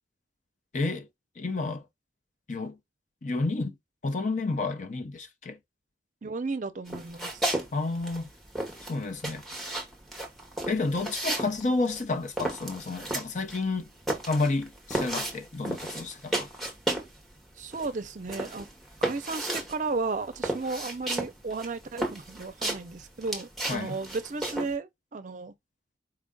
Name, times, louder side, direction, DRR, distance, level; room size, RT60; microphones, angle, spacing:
voice 1, 0.7-1.1 1.4-1.8 2.5-2.8 3.2-3.7 4.0-5.6 7.7-8.3 8.9-9.4 10.7-13.9 14.3-16.5 23.7-24.0, left 3 dB, 40° left, 0.6 m, -30 dB
voice 2, 6.2-7.4 17.6-18.7 19.0-25.5, right 3 dB, 45° right, 0.5 m, -34 dB
sound 1, 6.9-7.7 7.9-17.2 17.5-24.7, right 1 dB, ahead, 0.9 m, -33 dB
4.4 x 2.5 x 3.7 m
head